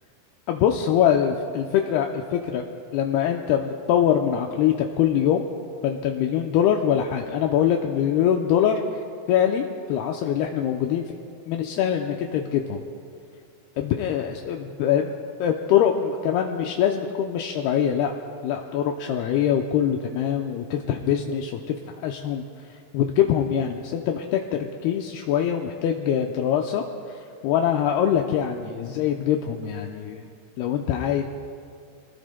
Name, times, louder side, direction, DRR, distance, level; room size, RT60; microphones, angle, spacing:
voice 1, 0.5-2.7 2.9-5.4 5.8-8.8 9.3-9.6 9.9-11.0 11.5-12.8 13.8-15.1 15.4-18.1 18.4-21.6 22.0-22.4 22.9-26.8 27.4-30.3 30.6-31.2, left 9 dB, 80° left, 2 dB, 2.4 m, -23 dB
26.0 x 20.0 x 2.2 m, 2.3 s
omnidirectional pair, 5.0 m